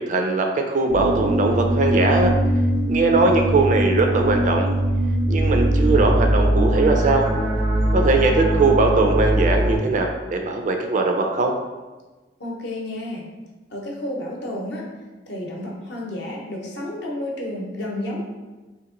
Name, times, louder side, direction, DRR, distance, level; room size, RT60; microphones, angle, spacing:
voice 1, 0.0-2.3 2.9-4.7 5.3-7.3 7.9-11.5, right 3 dB, 45° right, 3 dB, 0.3 m, -20 dB
sound 1, 0.9-9.8, equal, 85° right, 0.8 m, -21 dB
voice 2, 12.4-13.2 13.7-14.8 15.3-18.2, left 1 dB, 70° left, -2 dB, 0.8 m, -31 dB
2.9 x 2.8 x 3.7 m, 1.2 s
head